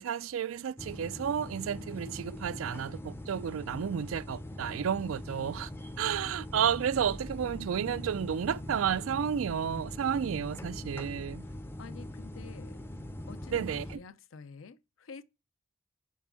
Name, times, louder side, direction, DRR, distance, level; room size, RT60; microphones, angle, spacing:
voice 1, 0.0-5.7 6.0-11.4 13.5-13.8, right 8 dB, 85° right, 0.4 m, -32 dB
sound 1, 0.8-14.0, left 1 dB, 10° left, 0.5 m, -42 dB
voice 2, 11.8-12.8 13.3-15.2, left 5 dB, 75° left, 0.6 m, -49 dB
5.5 x 4.6 x 5.4 m
head